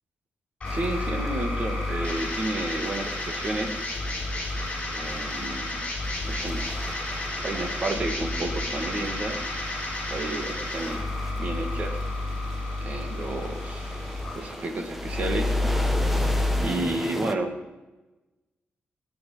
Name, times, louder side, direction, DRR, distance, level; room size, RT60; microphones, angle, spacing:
sound 1, 0.6-16.6, left 2 dB, 30° left, 6.6 m, -30 dB
sound 2, 0.6-17.3, equal, 5° right, 1.0 m, -39 dB
voice 1, 0.7-3.8 4.9-5.8 6.2-6.6 7.4-9.4 10.1-11.0 11.4-12.0 12.8-14.0 14.3-15.5 16.6-17.5, right 2 dB, 40° right, 5 dB, 1.9 m, -31 dB
19.5 x 10.5 x 5.6 m, 1.1 s
wide cardioid pair, 175°, 4 cm